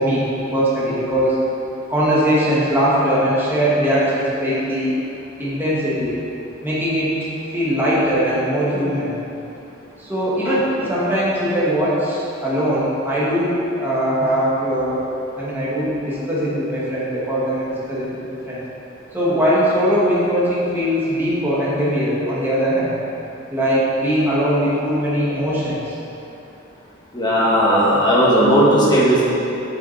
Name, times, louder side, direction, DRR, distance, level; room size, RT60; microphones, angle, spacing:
voice 1, 0.0-1.4 1.9-4.9 5.4-6.2 6.6-7.1 7.5-9.1 10.0-15.0 15.4-18.6 19.1-22.9 23.5-25.9, equal, 10° right, -9 dB, 2.0 m, -20 dB
voice 2, 27.1-29.3, equal, 20° left, -7 dB, 1.9 m, -15 dB
8.9 x 7.6 x 4.3 m, 2.8 s
head